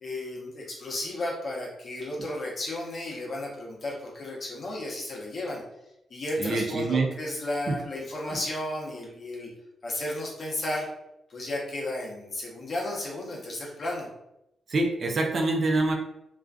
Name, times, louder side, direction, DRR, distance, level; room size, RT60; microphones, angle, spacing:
voice 1, 0.0-5.6 6.1-9.5 9.8-10.9 11.3-14.1, left 1 dB, 50° left, -2 dB, 0.8 m, -33 dB
voice 2, 6.4-7.1 7.7-7.8 14.7-15.9, right 2 dB, 50° right, 2 dB, 0.4 m, -25 dB
2.4 x 2.3 x 2.3 m, 0.86 s
cardioid pair, 80°, 0 cm